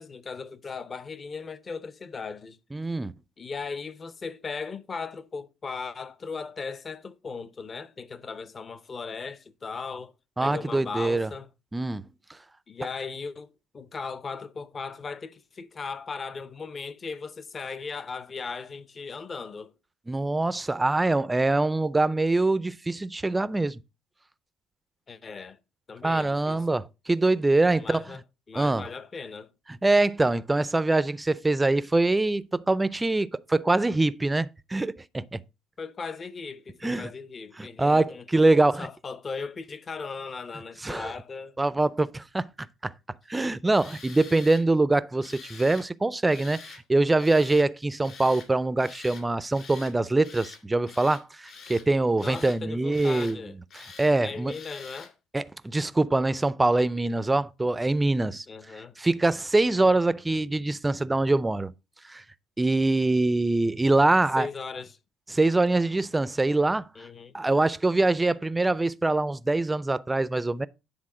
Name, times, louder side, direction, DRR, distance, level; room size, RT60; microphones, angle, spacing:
voice 1, 0.0-2.6 3.4-10.1 10.4-11.5 12.7-13.5 13.7-19.7 25.1-25.6 25.9-26.8 27.8-28.2 28.5-29.5 35.8-38.4 38.8-41.6 52.2-53.5 54.2-55.1 58.5-59.0 64.4-65.0 67.0-67.3, left 5 dB, 30° left, 0.6 m, -37 dB
voice 2, 2.7-3.1 10.4-11.3 11.7-12.0 20.1-23.8 26.0-28.0 28.6-28.8 29.7-35.4 36.8-37.1 37.6-38.9 40.8-41.1 41.6-42.5 42.8-42.9 43.3-53.4 53.8-54.5 55.3-58.5 59.0-61.7 62.1-62.2 62.6-64.5 65.3-66.8 67.3-70.7, right 2 dB, 15° right, 0.4 m, -24 dB
Tools, 43.7-44.6 45.2-45.9 46.3-46.8 47.2-47.7 48.0-48.5 48.8-49.3 49.5-49.9 50.2-50.6 50.9-51.9 52.2-52.6 52.9-53.4 53.7-54.1 54.5-55.1, left 5 dB, 50° left, 2.4 m, -46 dB
9.8 x 3.6 x 4.7 m
cardioid pair, 105°, 0 cm